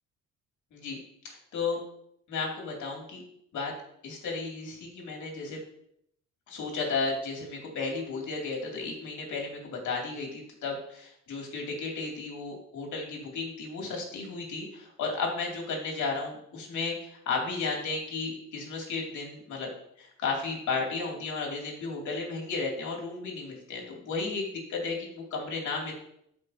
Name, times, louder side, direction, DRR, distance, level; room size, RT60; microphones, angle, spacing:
voice 1, 1.2-1.8 2.3-3.2 3.5-3.7 4.0-5.6 6.5-19.7 20.0-25.9, left 4 dB, 75° left, -1 dB, 2.6 m, -34 dB
12.5 x 5.1 x 2.8 m, 0.72 s
cardioid pair, 90°, 30 cm